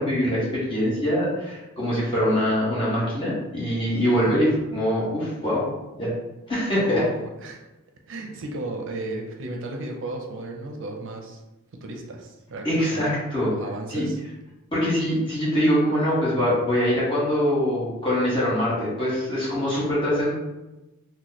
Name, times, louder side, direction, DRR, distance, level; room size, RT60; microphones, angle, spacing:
voice 1, 0.0-5.6 6.0-6.1 6.5-7.0 12.6-13.5 13.9-14.1 14.7-20.3, equal, 25° left, -8 dB, 1.4 m, -23 dB
voice 2, 4.0-4.4 6.8-7.1 7.4-7.6 8.1-11.4 11.8-13.1 13.5-14.2, right 2 dB, 65° right, 2 dB, 0.5 m, -34 dB
3.0 x 2.1 x 4.0 m, 1.0 s
head